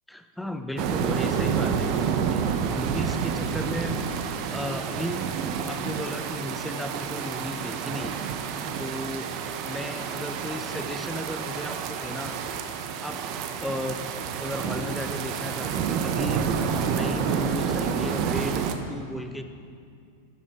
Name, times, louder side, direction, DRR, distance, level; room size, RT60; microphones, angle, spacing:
voice 1, 0.1-4.2 4.5-5.2 5.7-8.2 8.8-9.3 9.7-12.4 13.0-13.2 13.6-14.0 14.4-16.4 16.9-19.4, left 1 dB, 5° left, 7 dB, 0.7 m, -34 dB
sound 1, 0.8-18.7, right 7 dB, 50° right, 0.8 m, -29 dB
12.5 x 9.2 x 3.5 m, 2.3 s
hypercardioid pair, 105°, 0 cm